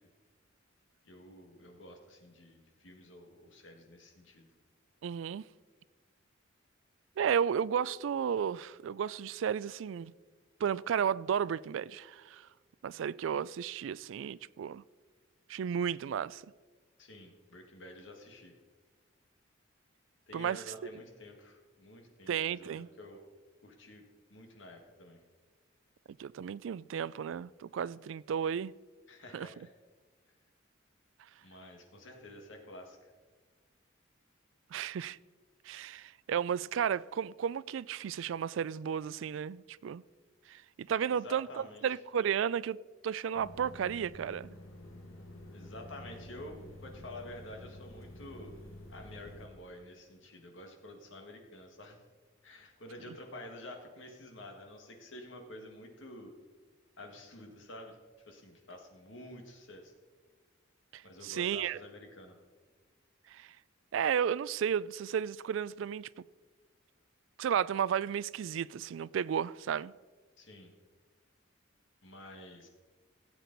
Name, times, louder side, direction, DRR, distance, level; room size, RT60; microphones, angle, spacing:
voice 1, 1.0-4.5 17.0-18.5 20.3-23.2 23.6-24.0 24.3-25.2 29.1-29.7 31.4-33.1 41.1-42.0 45.5-48.5 48.9-52.0 52.4-56.3 57.0-58.0 58.3-59.9 61.0-62.4 70.4-70.7 72.0-72.7, left 1 dB, 70° left, 1.9 m, -49 dB
voice 2, 5.0-5.4 7.2-10.1 10.6-12.5 12.8-14.8 15.5-16.4 20.3-20.7 22.3-22.9 26.2-28.7 29.3-29.5 34.7-35.2 35.7-40.0 40.5-44.5 60.9-61.8 63.3-63.5 63.9-66.1 67.4-69.9, right 8 dB, 75° right, 0.3 m, -33 dB
sound 1, 43.3-49.5, left 1 dB, 85° left, 1.9 m, -49 dB
16.5 x 8.2 x 4.0 m
head